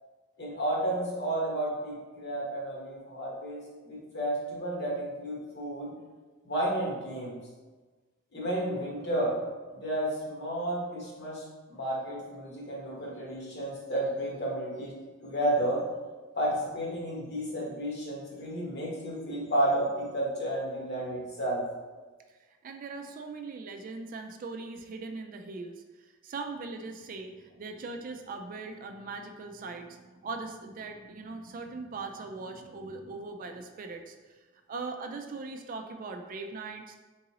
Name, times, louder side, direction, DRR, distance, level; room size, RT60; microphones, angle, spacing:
voice 1, 0.4-5.9 6.4-7.4 8.3-9.3 9.7-14.9 15.2-15.8 16.4-21.6, right 1 dB, 55° left, -4 dB, 1.2 m, -32 dB
voice 2, 22.3-34.4 34.7-37.0, right 3 dB, 45° right, 5 dB, 0.3 m, -40 dB
3.8 x 3.8 x 2.9 m, 1.3 s
head